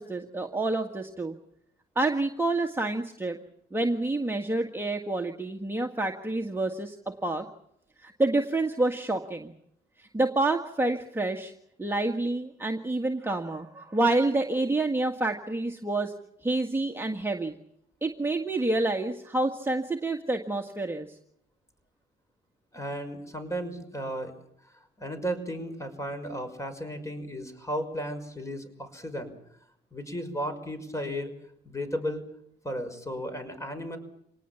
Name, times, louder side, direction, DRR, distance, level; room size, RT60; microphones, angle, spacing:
voice 1, 0.0-1.4 2.0-3.4 3.7-7.5 8.0-9.5 10.0-11.5 11.8-16.1 16.4-17.6 18.0-21.2, right 2 dB, 10° right, 2 dB, 1.8 m, -28 dB
voice 2, 22.7-24.3 25.0-29.3 29.9-31.3 31.6-32.3 32.6-34.0, equal, 15° left, 8 dB, 5.9 m, -34 dB
26.5 x 19.0 x 7.2 m, 0.72 s
cardioid pair, 90°, 20 cm